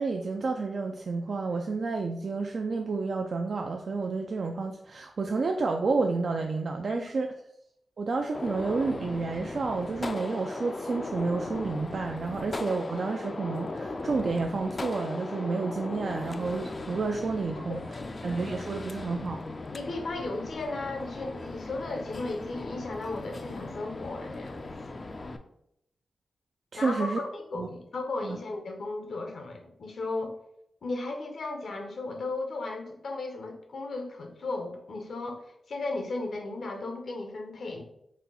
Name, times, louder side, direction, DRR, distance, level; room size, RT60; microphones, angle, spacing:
voice 1, 0.0-7.3 8.0-17.8 18.2-19.4 26.7-27.2 27.6-27.7 28.2-28.4, right 4 dB, 60° right, 2 dB, 0.3 m, -30 dB
Gunshot gunfire, 8.3-25.4, left 2 dB, 40° left, 0.4 m, -38 dB
voice 2, 17.7-18.1 19.7-24.7 26.8-30.3 30.8-37.8, left 2 dB, 70° left, 4 dB, 0.7 m, -35 dB
4.2 x 2.2 x 3.9 m, 0.76 s
cardioid pair, 70°, 0 cm